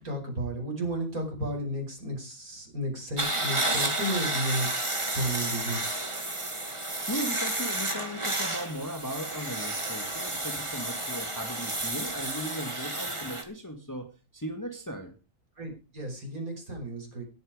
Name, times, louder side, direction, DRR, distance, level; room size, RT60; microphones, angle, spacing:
voice 1, 0.0-4.7 5.0-5.8 15.6-17.2, right 1 dB, 75° right, 1 dB, 5.6 m, -33 dB
sound 1, 3.2-13.4, right 2 dB, 20° right, 2.3 m, -31 dB
voice 2, 7.0-15.1, equal, 15° left, 5 dB, 1.9 m, -37 dB
18.5 x 9.2 x 5.0 m, 0.31 s
omnidirectional pair, 1.5 m